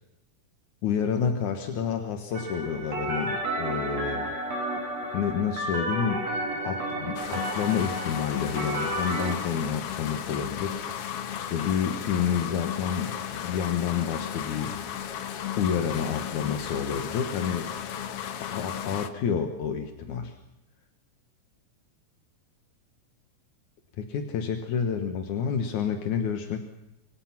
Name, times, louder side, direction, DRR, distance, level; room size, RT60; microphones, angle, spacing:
voice 1, 0.8-4.3 5.1-6.3 6.6-10.8 11.4-14.8 15.6-17.7 18.4-20.4 24.0-26.6, left 7 dB, 75° left, 6 dB, 2.8 m, -29 dB
sound 1, 2.3-9.3, right 1 dB, 60° right, 5.0 m, -32 dB
sound 2, 7.1-19.1, left 9 dB, 60° left, 1.9 m, -35 dB
26.5 x 24.0 x 6.0 m, 0.91 s
omnidirectional pair, 3.5 m